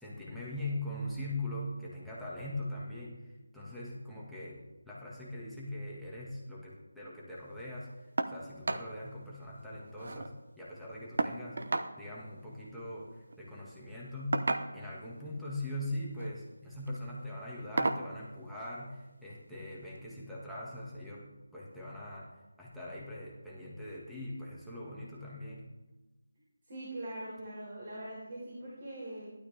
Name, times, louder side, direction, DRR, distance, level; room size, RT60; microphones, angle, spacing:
voice 1, 0.0-7.9 8.3-11.6 12.0-22.3 22.6-25.6, left 1 dB, ahead, -9 dB, 2.2 m, -41 dB
sound 1, 8.2-8.4 8.7-8.9 9.3-9.4 9.6-10.3 11.2-11.9 13.2-13.4 14.3-15.0 16.0-16.3 16.8-17.0 17.8-18.1 19.4-19.5 20.0-20.1, right 2 dB, 55° right, 1.1 m, -33 dB
voice 2, 26.6-29.3, right 1 dB, 35° right, -5 dB, 4.4 m, -42 dB
17.0 x 12.5 x 3.6 m, 1.1 s
figure-of-eight pair, 165°, 0 cm